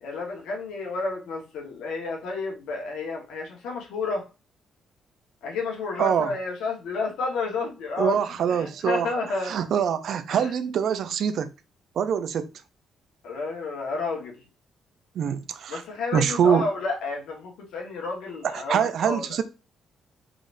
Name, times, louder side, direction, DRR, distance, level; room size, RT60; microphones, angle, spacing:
voice 1, 0.0-4.2 5.4-9.6 10.3-10.5 13.2-14.4 15.7-19.4, left 3 dB, 85° left, 1.3 m, -31 dB
voice 2, 6.0-6.3 8.0-9.1 9.4-11.5 12.0-12.5 15.2-15.8 16.1-16.6 18.5-19.4, right 8 dB, 65° right, 0.4 m, -24 dB
3.8 x 3.3 x 2.5 m
cardioid pair, 90°, 0 cm